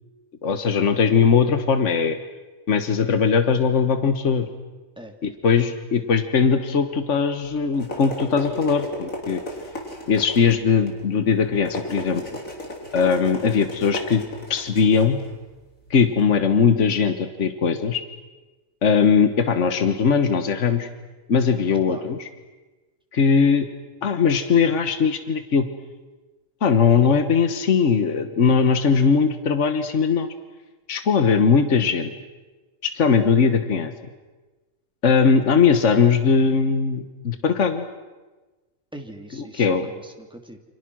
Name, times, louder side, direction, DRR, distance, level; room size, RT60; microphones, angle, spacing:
voice 1, 0.4-2.2 2.7-4.5 5.2-9.4 10.1-12.2 12.9-14.2 14.5-15.2 15.9-18.0 18.8-20.9 21.3-22.2 23.1-23.7 24.0-25.7 26.6-30.3 30.9-32.1 32.8-33.9 35.0-37.9 39.6-39.9, left 5 dB, 65° left, 9 dB, 1.7 m, -19 dB
sound 1, 7.4-16.3, equal, 80° left, 4.7 m, -35 dB
voice 2, 38.9-40.6, right 1 dB, 5° right, 3 dB, 2.7 m, -41 dB
29.0 x 27.0 x 6.3 m, 1.2 s
omnidirectional pair, 1.4 m